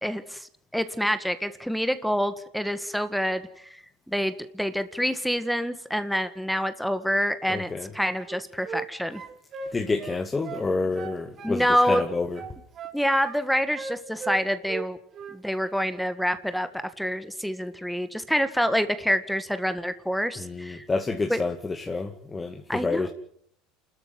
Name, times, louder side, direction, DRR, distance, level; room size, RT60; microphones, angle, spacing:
voice 1, 0.0-9.2 11.4-12.0 12.9-15.0 15.3-16.7 17.0-20.8 21.3-21.4 22.7-23.1, equal, ahead, 11 dB, 1.6 m, -27 dB
voice 2, 7.5-7.9 9.7-12.4 20.4-23.1, left 3 dB, 20° left, 5 dB, 2.1 m, -29 dB
sound 1, 8.2-8.9 9.1-10.7 10.9-12.1 12.3-13.4 13.8-14.9 15.1-15.4, right 5 dB, 40° right, 3.3 m, -38 dB
28.0 x 13.5 x 9.7 m, 0.67 s
supercardioid pair, 105°, 0 cm